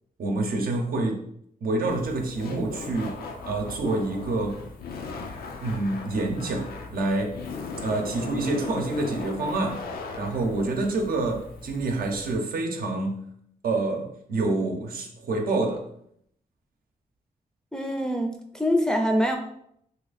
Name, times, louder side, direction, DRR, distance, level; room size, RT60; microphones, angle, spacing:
voice 1, 0.2-1.3 1.6-4.6 5.6-7.4 7.8-9.8 10.1-13.3 13.6-15.9, right 2 dB, 75° right, 2 dB, 0.7 m, -27 dB
Laughter, 1.9-12.4, left 4 dB, 90° left, 0.5 m, -38 dB
voice 2, 17.7-19.4, equal, 5° left, 2 dB, 0.5 m, -24 dB
2.8 x 2.5 x 4.0 m, 0.71 s
cardioid pair, 75°, 15 cm